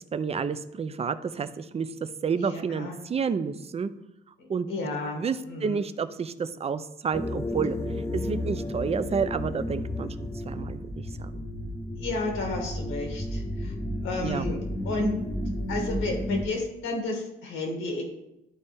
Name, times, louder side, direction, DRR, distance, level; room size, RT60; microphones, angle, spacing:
voice 1, 0.1-1.9 2.2-3.9 4.5-4.7 5.2-7.8 8.1-11.0 11.3-11.4 14.2-14.5, right 6 dB, 30° right, 13 dB, 0.5 m, -30 dB
voice 2, 2.4-3.0 4.4-5.8 12.0-13.7 14.0-14.6 14.8-15.1 15.7-18.0, left 2 dB, 90° left, 1 dB, 2.0 m, -32 dB
sound 1, 7.1-16.4, left 1 dB, 15° left, 0.7 m, -32 dB
11.5 x 4.2 x 3.5 m, 0.88 s
cardioid pair, 90°, 20 cm